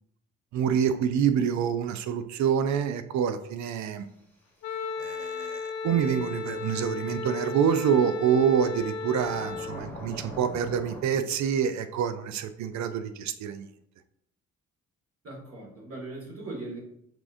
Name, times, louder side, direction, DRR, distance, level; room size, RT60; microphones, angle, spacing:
voice 1, 0.5-4.1 5.0-13.7, right 8 dB, 65° right, 11 dB, 0.5 m, -26 dB
Wind instrument woodwind instrument, 4.6-9.8, left 5 dB, 85° left, 0.7 m, -35 dB
sound 1, 6.3-6.4 8.5-11.0, left 1 dB, 5° left, 1.2 m, -43 dB
voice 2, 15.2-16.8, right 2 dB, 50° right, -2 dB, 1.9 m, -39 dB
5.9 x 3.6 x 2.5 m, 0.76 s
cardioid pair, 90°, 30 cm